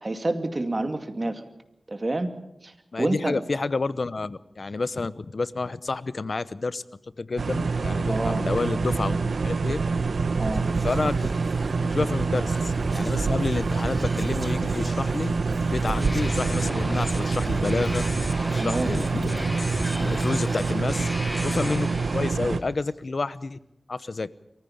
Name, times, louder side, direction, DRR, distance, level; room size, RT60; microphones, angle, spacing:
voice 1, 0.0-1.5 1.9-2.3 2.6-2.7 3.0-3.4 8.1-8.4 10.4-10.7 18.5-18.9, right 2 dB, 40° right, 7 dB, 2.4 m, -28 dB
voice 2, 2.9-6.8 7.2-9.8 10.8-11.3 11.8-18.0 18.5-19.5 20.0-21.1 21.4-23.6 23.9-24.3, left 3 dB, 65° left, 16 dB, 0.8 m, -29 dB
sound 1, 7.4-22.6, right 4 dB, 90° right, 1.1 m, -26 dB
Whispering, 10.4-22.9, right 1 dB, 10° right, 2.4 m, -42 dB
sound 2, 15.8-22.3, left 1 dB, 20° left, 1.7 m, -35 dB
23.5 x 15.0 x 8.7 m, 0.83 s
wide cardioid pair, 55°, 0 cm